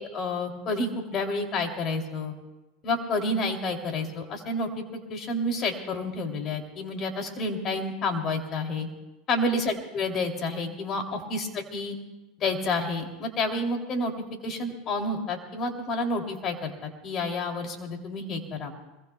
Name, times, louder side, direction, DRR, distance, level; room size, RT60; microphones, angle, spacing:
voice 1, 0.0-2.3 2.8-4.7 5.1-8.9 9.3-11.9 12.4-18.8, left 2 dB, 40° left, 3 dB, 3.0 m, -29 dB
25.5 x 22.0 x 2.3 m, 1.1 s
hypercardioid pair, 100°, 0 cm